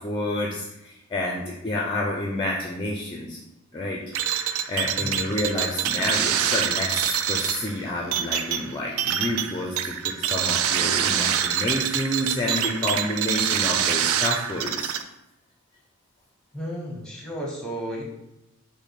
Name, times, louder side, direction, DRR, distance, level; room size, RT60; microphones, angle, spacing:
voice 1, 0.0-3.4 3.7-4.0 4.7-14.9, left 1 dB, 20° left, -1 dB, 0.4 m, -29 dB
sound 1, 4.1-15.0, right 9 dB, 80° right, 0.3 m, -25 dB
voice 2, 4.8-5.2 16.5-18.0, equal, 5° left, -2 dB, 0.8 m, -33 dB
5.9 x 2.1 x 4.1 m, 0.91 s
head